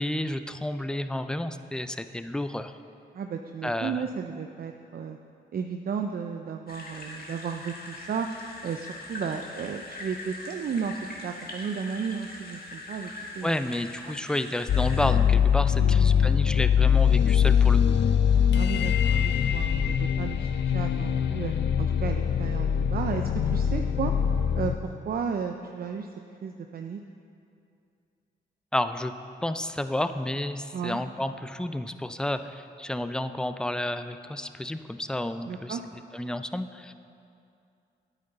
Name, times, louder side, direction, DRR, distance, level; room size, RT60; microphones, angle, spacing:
voice 1, 0.0-2.7 3.6-4.1 13.4-17.8 28.7-29.1 29.4-36.9, left 1 dB, 5° left, 10 dB, 0.4 m, -31 dB
voice 2, 3.1-5.2 5.5-8.3 8.6-10.9 11.2-13.1 13.4-13.6 15.7-16.4 18.5-24.1 24.5-26.1 26.4-27.0 30.7-31.0 35.5-35.8, right 6 dB, 50° right, 5 dB, 0.5 m, -34 dB
sound 1, 6.7-15.1, left 2 dB, 50° left, 1.6 m, -42 dB
sound 2, 14.7-24.8, left 8 dB, 70° left, 0.4 m, -23 dB
9.6 x 9.1 x 3.9 m, 2.6 s
cardioid pair, 65°, 19 cm